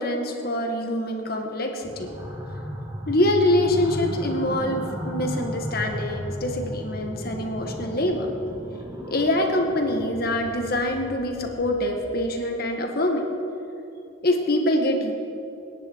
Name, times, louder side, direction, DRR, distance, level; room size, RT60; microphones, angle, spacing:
voice 1, 0.0-2.1 3.1-8.3 9.1-13.3 14.2-15.1, left 1 dB, 45° left, 3 dB, 1.7 m, -25 dB
sound 1, 1.8-12.3, equal, 15° right, 2.4 m, -35 dB
26.0 x 11.0 x 4.7 m, 2.8 s
head